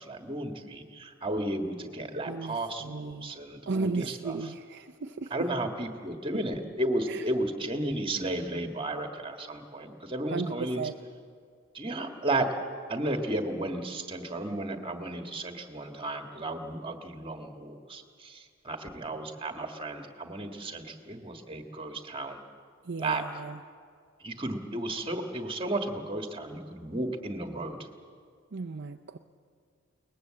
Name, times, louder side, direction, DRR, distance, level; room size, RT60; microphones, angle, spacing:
voice 1, 0.0-4.4 5.3-10.8 11.7-12.5 12.9-22.4 23.0-23.4 24.2-27.8, right 1 dB, 25° right, 5 dB, 1.6 m, -33 dB
voice 2, 2.3-3.3 3.7-5.5 6.3-6.4 7.1-7.2 10.3-10.9 22.8-23.6 28.5-29.2, right 4 dB, 55° right, 6 dB, 0.6 m, -35 dB
22.5 x 19.5 x 7.6 m, 2.2 s
head